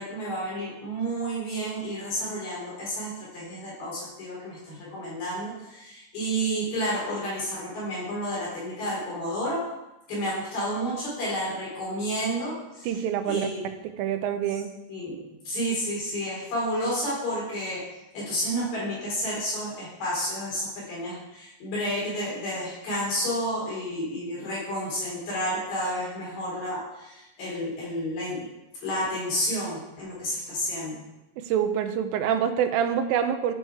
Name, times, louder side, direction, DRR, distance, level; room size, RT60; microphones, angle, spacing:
voice 1, 0.0-9.6 10.1-12.9 13.3-13.6 14.9-15.2 15.5-17.8 18.1-28.4 28.8-31.0, equal, 80° left, -6 dB, 5.9 m, -30 dB
voice 2, 12.9-13.5 14.0-14.7 31.4-33.5, right 9 dB, 85° right, 8 dB, 2.5 m, -26 dB
12.0 x 5.5 x 4.9 m, 0.95 s
omnidirectional pair, 4.0 m